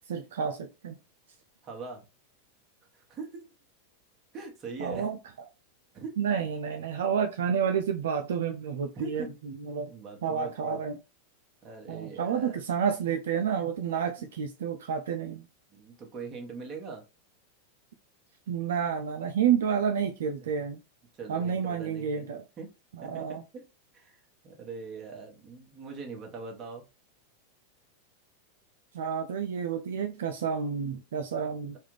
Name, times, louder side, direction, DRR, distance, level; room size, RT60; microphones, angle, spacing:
voice 1, 0.1-0.9 4.8-5.2 6.2-9.3 9.7-9.9 10.2-11.0 11.9-15.4 18.5-20.8 21.3-22.4 22.9-23.4 28.9-31.8, right 7 dB, 75° right, 0.4 m, -30 dB
voice 2, 1.6-2.0 2.9-3.5 4.3-5.1 5.9-6.2 8.9-9.3 9.9-10.8 11.6-12.6 15.7-17.0 21.2-22.7 23.0-23.4 23.9-26.8, right 4 dB, 35° right, 1.3 m, -42 dB
3.3 x 2.4 x 3.2 m
hypercardioid pair, 105°, 0 cm